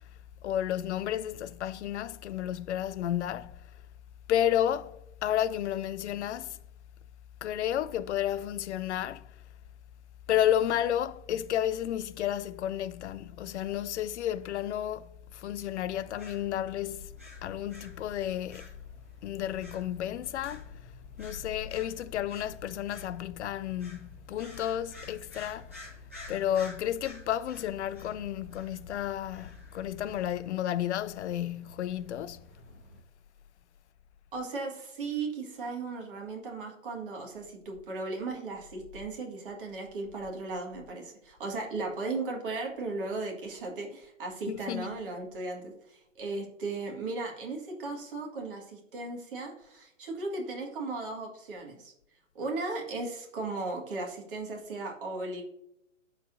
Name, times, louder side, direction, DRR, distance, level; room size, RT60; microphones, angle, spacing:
voice 1, 0.4-3.6 4.3-6.6 7.4-9.3 10.3-17.1 17.4-18.7 19.2-20.7 21.2-25.7 26.3-32.5 44.5-44.9, left 11 dB, 60° left, 0.5 m, -32 dB
sound 1, 15.7-33.0, left 1 dB, 10° right, 0.3 m, -51 dB
voice 2, 34.3-51.9 52.3-55.4, right 3 dB, 45° right, 1.7 m, -36 dB
12.5 x 4.1 x 2.5 m
hypercardioid pair, 155°, 39 cm